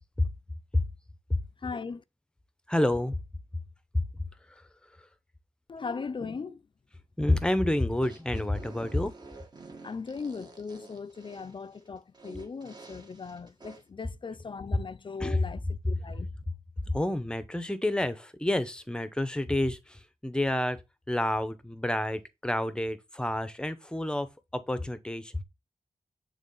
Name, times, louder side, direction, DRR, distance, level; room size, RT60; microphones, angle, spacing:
voice 1, 1.6-2.0 5.7-6.6 9.8-16.3, left 5 dB, 40° left, 0.5 m, -38 dB
voice 2, 2.7-3.1 7.2-9.1 14.7-14.8 15.2-15.4 16.1-16.2 16.9-20.8 21.1-24.3 24.5-25.4, left 1 dB, 5° left, 0.8 m, -28 dB
sound 1, 7.9-13.8, right 3 dB, 35° right, 1.7 m, -49 dB
8.9 x 3.9 x 5.5 m
wide cardioid pair, 160°, 12 cm